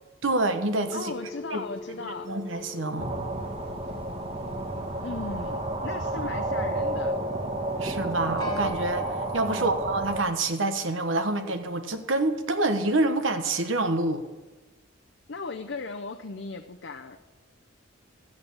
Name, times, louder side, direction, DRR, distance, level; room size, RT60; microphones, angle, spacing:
voice 1, 0.2-1.1 1.5-1.6 2.3-3.1 7.8-14.2, right 2 dB, 70° right, 7 dB, 1.1 m, -27 dB
sound 1, 0.8-10.1, left 1 dB, 20° left, 1.6 m, -43 dB
voice 2, 0.9-2.3 5.0-7.2 9.5-9.8 15.3-17.2, left 3 dB, 60° left, 4 dB, 0.7 m, -37 dB
sound 2, 3.0-10.2, right 2 dB, 30° right, 1.1 m, -31 dB
14.0 x 8.0 x 8.6 m, 1.2 s
head